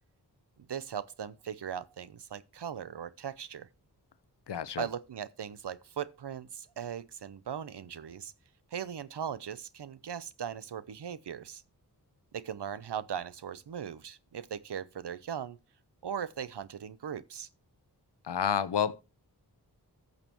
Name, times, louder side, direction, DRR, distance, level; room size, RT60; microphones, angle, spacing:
voice 1, 0.6-3.7 4.8-8.3 8.7-11.6 12.3-15.6 16.0-17.5, right 8 dB, 90° right, 0.7 m, -39 dB
voice 2, 4.5-4.9 18.2-19.0, left 8 dB, 90° left, 0.8 m, -30 dB
14.5 x 6.6 x 3.0 m
wide cardioid pair, 60°, 40 cm